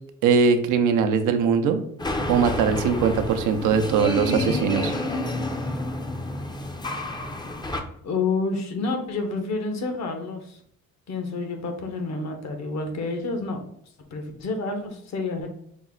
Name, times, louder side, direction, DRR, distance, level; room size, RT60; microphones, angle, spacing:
voice 1, 0.2-1.8 2.3-4.9, right 6 dB, 85° right, 7 dB, 0.6 m, -21 dB
sound 1, 2.0-7.8, left 2 dB, 15° left, 0.5 m, -29 dB
voice 2, 4.2-4.6 8.0-10.6 11.1-13.6 14.1-15.5, left 3 dB, 60° left, 5 dB, 1.0 m, -29 dB
5.3 x 2.1 x 3.7 m, 0.67 s
cardioid pair, 90°, 30 cm